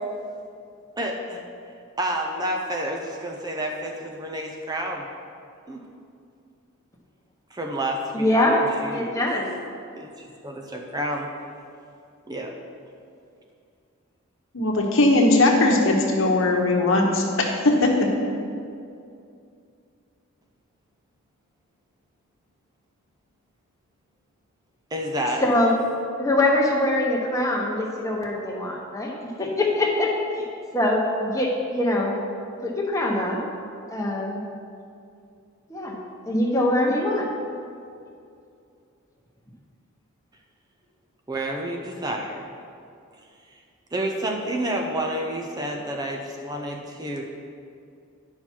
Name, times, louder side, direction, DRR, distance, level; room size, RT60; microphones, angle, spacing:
voice 1, 1.0-1.4 2.0-5.1 5.7-5.8 7.5-9.3 10.0-11.3 12.3-12.5 24.9-25.5 41.3-42.5 43.9-47.2, right 1 dB, 20° right, 2 dB, 0.6 m, -29 dB
voice 2, 8.1-8.6 8.9-9.5 25.4-25.7 26.2-30.4 30.7-32.1 32.6-33.4 33.9-34.4 35.7-36.0 36.3-37.2, left 1 dB, 15° left, -2 dB, 1.1 m, -23 dB
voice 3, 14.5-18.1, left 2 dB, 60° left, 0 dB, 1.1 m, -19 dB
10.0 x 5.7 x 4.6 m, 2.5 s
head